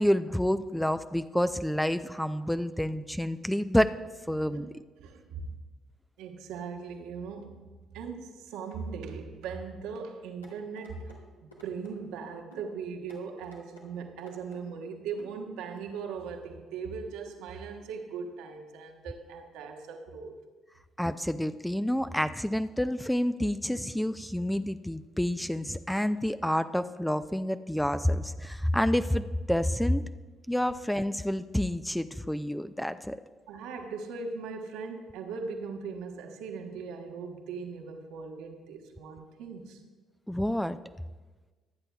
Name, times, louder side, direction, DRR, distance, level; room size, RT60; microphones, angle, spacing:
voice 1, 0.0-4.0 4.3-4.7 21.0-30.0 30.5-33.2 40.3-40.8, left 1 dB, 5° left, 12 dB, 0.4 m, -28 dB
voice 2, 5.0-5.5 6.2-7.6 7.9-20.4 33.5-39.8, right 5 dB, 65° right, 3 dB, 1.2 m, -39 dB
sound 1, 10.4-11.2 11.5-11.9 12.5-12.7 13.1-13.9 14.2-14.6 15.2-15.3 15.8-15.9, equal, 90° left, 1.7 m, -52 dB
23.5 x 8.9 x 2.3 m, 1.3 s
figure-of-eight pair, 45°, 0 cm